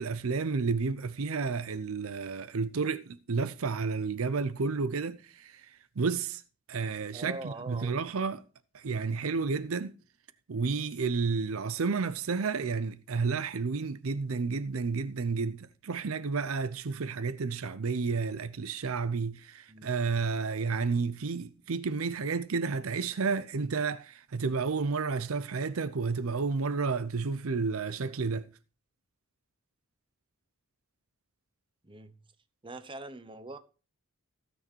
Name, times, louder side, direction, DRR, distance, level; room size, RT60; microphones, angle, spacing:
voice 1, 0.0-5.5 6.0-6.4 6.7-8.4 8.7-9.9 10.5-28.5, right 4 dB, 80° right, 0.6 m, -31 dB
voice 2, 7.1-8.2 19.7-19.9 31.8-32.2 32.6-33.6, right 2 dB, 25° right, 0.9 m, -43 dB
16.0 x 6.4 x 4.5 m
head